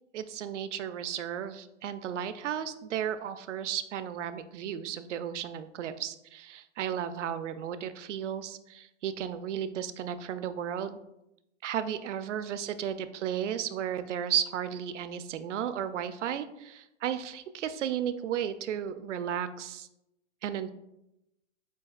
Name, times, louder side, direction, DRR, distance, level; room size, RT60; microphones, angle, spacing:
voice 1, 0.1-11.0 11.6-19.9 20.4-20.7, right 9 dB, 65° right, 12 dB, 0.5 m, -34 dB
7.9 x 2.8 x 2.3 m, 0.89 s
hypercardioid pair, 135°, 38 cm